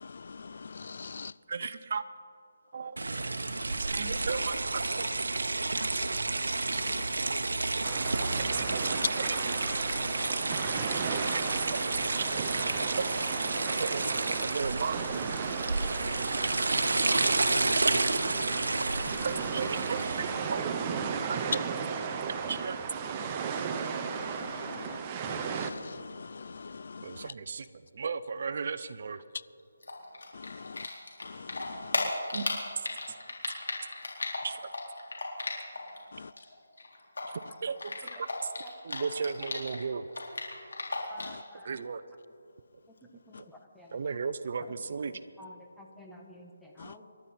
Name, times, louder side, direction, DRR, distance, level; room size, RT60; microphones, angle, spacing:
voice 1, 0.0-1.3 6.8-7.1 8.4-8.5 10.8-10.9 17.4-17.9 19.0-19.3 24.0-27.3 30.3-30.9 31.2-32.1 36.1-36.3 41.2-41.4 46.8-46.9, left 5 dB, 55° left, 19 dB, 0.4 m, -44 dB
voice 2, 1.5-2.0 2.7-3.0 3.8-5.1 6.7-6.8 8.3-8.6 9.2-9.3 10.6-10.7 11.0-12.1 12.8-13.1 13.8-15.2 16.1-16.7 17.9-18.2 19.2-20.0 20.5-20.6 21.2-21.5 22.5-22.8 27.0-27.7 27.9-29.2 32.3-32.5 32.7-32.8 34.4-34.6 37.2-37.3 37.6-38.5 38.8-40.1 41.6-42.0 43.4-43.5 43.9-45.2, right 5 dB, 50° right, 13 dB, 0.7 m, -35 dB
sound 1, 3.0-20.6, right 3 dB, 80° right, 1.1 m, -30 dB
sound 2, 7.8-25.7, right 6 dB, 20° right, 0.9 m, -35 dB
Typing, 29.8-31.2 31.5-36.0 36.2-39.8 40.1-41.4, left 3 dB, 80° left, 4.1 m, -35 dB
voice 3, 38.6-39.1 41.1-41.8 43.3-44.0 45.1-47.0, equal, ahead, -2 dB, 1.3 m, -51 dB
27.0 x 12.0 x 4.3 m, 2.4 s
figure-of-eight pair, 165°, 0 cm